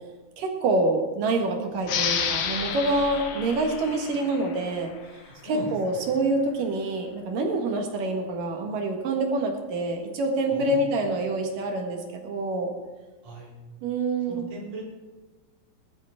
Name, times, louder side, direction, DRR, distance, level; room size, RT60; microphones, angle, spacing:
voice 1, 0.4-4.9 5.4-12.7 13.8-14.4, right 2 dB, 75° right, 2 dB, 3.4 m, -26 dB
sound 1, 1.8-5.1, left 7 dB, 85° left, 2.9 m, -30 dB
voice 2, 5.3-6.2 10.5-11.0 13.2-13.5 14.3-14.8, right 2 dB, 50° right, -4 dB, 4.7 m, -39 dB
20.5 x 12.5 x 3.6 m, 1.2 s
omnidirectional pair, 3.9 m